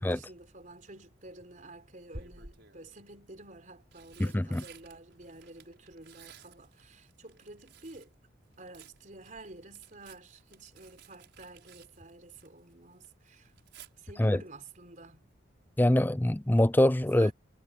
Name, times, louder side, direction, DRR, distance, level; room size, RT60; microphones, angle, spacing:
voice 1, 0.0-8.1 8.6-13.5 13.9-15.2 17.1-17.3, right 2 dB, 40° right, 4.3 m, -50 dB
Tearing, 0.6-1.1 2.1-2.9 3.6-8.1 8.4-12.7 13.0-13.9 15.8-16.1 16.4-16.5, right 3 dB, 60° right, 6.6 m, -53 dB
voice 2, 4.2-4.6 14.2-14.4 15.8-17.3, left 1 dB, 10° left, 0.4 m, -24 dB
head